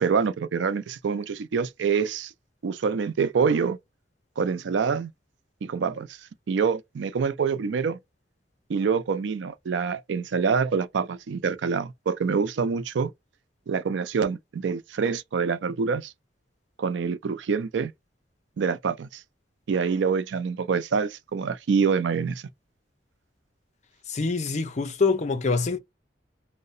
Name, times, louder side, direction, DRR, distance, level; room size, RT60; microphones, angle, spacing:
voice 1, 0.0-2.3 2.6-3.8 4.4-5.1 5.6-6.1 6.5-8.0 8.7-13.1 13.7-16.1 16.8-17.9 18.6-19.2 19.7-22.4, right 5 dB, 80° right, 0.4 m, -26 dB
voice 2, 24.1-25.8, left 4 dB, 40° left, 0.5 m, -25 dB
2.8 x 2.0 x 2.4 m
head